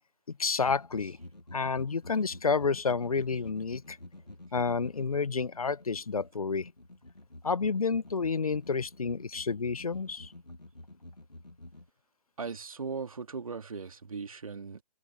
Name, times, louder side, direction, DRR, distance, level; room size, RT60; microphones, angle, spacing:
voice 1, 0.4-1.2 1.5-4.0 4.5-6.7 7.4-10.3, left 5 dB, 60° left, 1.2 m, -30 dB
sound 1, 0.6-11.9, left 1 dB, 90° left, 2.4 m, -50 dB
voice 2, 12.4-14.8, right 5 dB, 55° right, 2.4 m, -38 dB
figure-of-eight pair, 145°, 21 cm